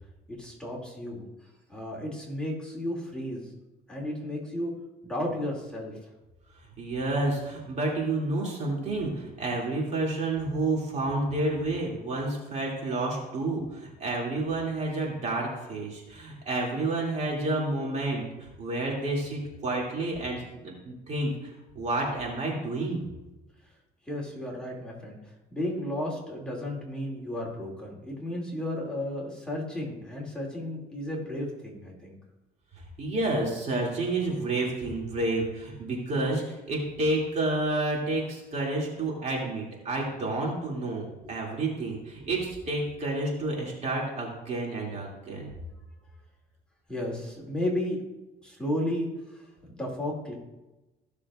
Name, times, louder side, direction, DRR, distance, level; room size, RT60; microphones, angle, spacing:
voice 1, 0.4-1.2 1.7-3.5 3.9-4.8 5.0-5.9 24.1-32.2 46.9-48.0 48.4-50.3, left 1 dB, 5° left, -4 dB, 2.6 m, -33 dB
voice 2, 6.8-18.2 18.6-23.0 33.0-45.5, right 2 dB, 40° right, -2 dB, 2.6 m, -30 dB
15.5 x 6.6 x 2.5 m, 1.0 s
cardioid pair, 110°, 17 cm